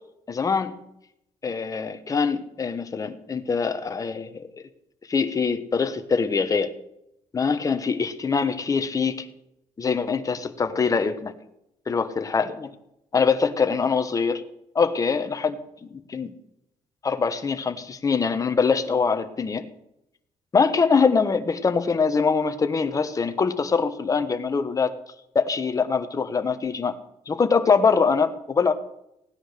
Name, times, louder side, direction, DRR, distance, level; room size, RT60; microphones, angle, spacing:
voice 1, 0.3-0.8 1.4-4.5 5.1-6.7 7.3-9.3 9.8-11.3 11.9-12.7 13.1-14.4 14.7-16.3 17.0-19.7 20.5-24.9 25.3-26.9 27.3-28.7, left 5 dB, 30° left, 9 dB, 1.2 m, -23 dB
16.5 x 9.9 x 6.7 m, 0.81 s
cardioid pair, 125°, 12 cm